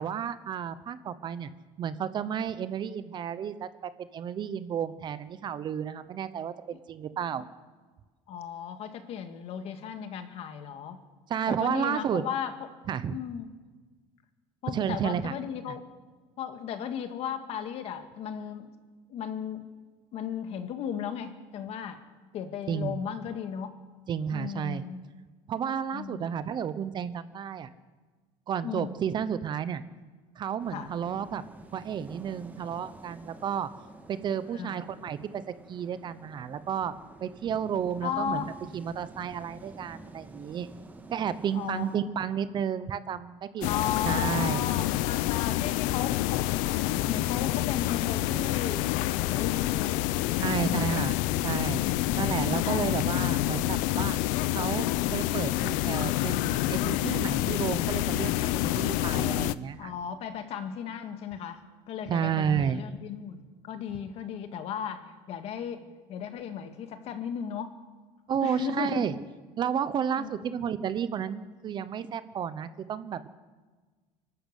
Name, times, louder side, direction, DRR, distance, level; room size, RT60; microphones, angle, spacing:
voice 1, 0.0-1.5 1.8-7.4 11.3-12.2 12.9-13.2 14.7-15.3 22.7-23.0 24.1-24.8 25.5-27.7 28.5-29.8 30.4-31.4 31.7-33.7 34.1-35.4 35.7-36.9 37.2-38.4 38.7-40.7 41.1-43.7 44.0-44.6 50.4-51.2 51.4-51.8 52.1-54.2 54.5-59.9 62.1-62.8 68.3-69.1 69.6-73.3, right 8 dB, 35° right, 14 dB, 0.9 m, -32 dB
voice 2, 8.3-11.0 11.5-12.5 13.1-13.5 14.6-15.8 16.4-18.7 19.1-19.6 20.1-22.0 22.3-23.7 24.3-25.0 25.9-26.3 28.6-29.0 30.7-30.9 34.5-34.8 38.0-38.5 41.5-41.9 43.6-46.5 47.1-50.0 50.4-51.1 52.3-52.9 59.8-67.7 68.4-69.1 70.2-70.6, left 8 dB, 50° left, 8 dB, 1.9 m, -36 dB
sound 1, 30.6-42.0, right 2 dB, 10° right, 1.9 m, -49 dB
sound 2, 43.6-59.5, left 16 dB, 70° left, 0.7 m, -27 dB
24.5 x 12.5 x 8.3 m, 1.4 s
cardioid pair, 150°, 14 cm